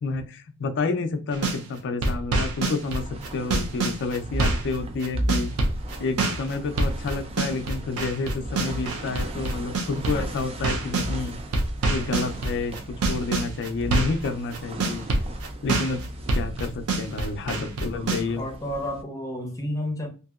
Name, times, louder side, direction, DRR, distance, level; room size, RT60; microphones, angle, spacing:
voice 1, 0.0-3.0 3.3-5.5 6.0-11.4 11.9-12.7 13.1-15.0 15.6-16.0 16.3-18.4, left 3 dB, 55° left, 0.4 m, -29 dB
sound 1, 1.3-1.6 2.0-11.1 11.5-14.3 14.5-18.2, right 2 dB, 80° right, 0.6 m, -26 dB
sound 2, 2.8-19.0, right 1 dB, 25° right, 0.4 m, -36 dB
voice 2, 18.4-20.1, left 1 dB, 15° left, 0.7 m, -31 dB
2.7 x 2.6 x 2.3 m
head